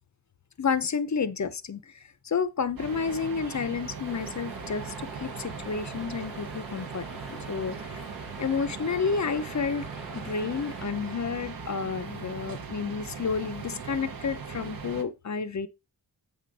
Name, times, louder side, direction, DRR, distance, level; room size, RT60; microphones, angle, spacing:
voice 1, 0.6-8.0 8.4-9.9 10.1-15.7, left 5 dB, 40° left, 0.6 m, -30 dB
sound 1, 2.8-15.0, right 5 dB, 50° right, 0.9 m, -39 dB
sound 2, 4.1-10.9, right 1 dB, ahead, 0.9 m, -46 dB
7.7 x 3.6 x 5.2 m
wide cardioid pair, 130°, 45 cm